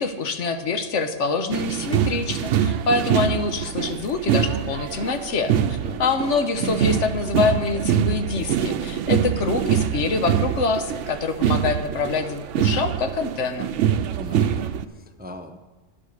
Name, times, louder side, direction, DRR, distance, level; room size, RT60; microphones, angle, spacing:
voice 1, 0.0-13.7, left 4 dB, 80° left, 8 dB, 1.3 m, -25 dB
sound 1, 1.5-14.9, right 9 dB, 85° right, 0.9 m, -24 dB
voice 2, 14.2-15.6, left 1 dB, 10° right, 7 dB, 0.5 m, -40 dB
11.0 x 10.0 x 6.4 m, 1.2 s
omnidirectional pair, 1.2 m